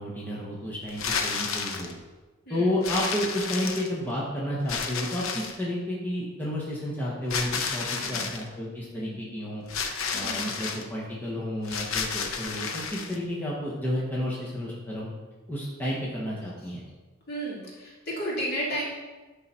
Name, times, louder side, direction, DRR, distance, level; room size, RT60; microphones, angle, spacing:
voice 1, 0.0-1.9 2.5-9.6 10.1-15.1 15.5-16.8, left 1 dB, 10° left, -6 dB, 1.1 m, -31 dB
sound 1, 0.9-1.9 2.8-4.1 4.7-5.6 7.3-8.4 9.7-10.8 11.6-13.2, left 5 dB, 75° left, 0.8 m, -31 dB
voice 2, 7.9-8.3 8.9-9.1 10.1-10.4 17.3-18.8, right 1 dB, 50° left, -5 dB, 2.4 m, -33 dB
11.0 x 3.9 x 4.3 m, 1.2 s
head